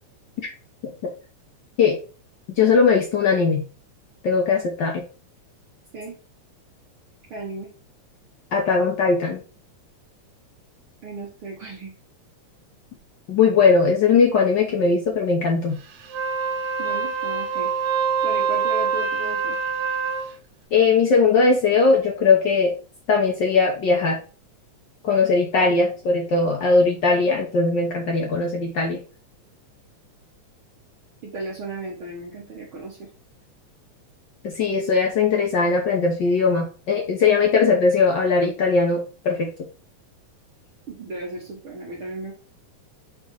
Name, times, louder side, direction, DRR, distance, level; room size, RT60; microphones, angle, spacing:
voice 1, 2.6-3.6 4.2-5.0 8.5-9.4 13.3-15.8 20.7-22.7 23.1-24.2 25.0-29.0 34.4-39.5, left 4 dB, 85° left, 1 dB, 0.9 m, -19 dB
voice 2, 7.3-7.7 11.0-11.9 16.8-17.7 18.2-19.6 31.2-33.1 40.9-42.3, right 2 dB, 50° right, -4 dB, 2.0 m, -35 dB
Wind instrument woodwind instrument, 16.0-20.3, right 6 dB, 85° right, 2.6 m, -25 dB
6.3 x 3.5 x 4.6 m, 0.37 s
omnidirectional pair, 3.4 m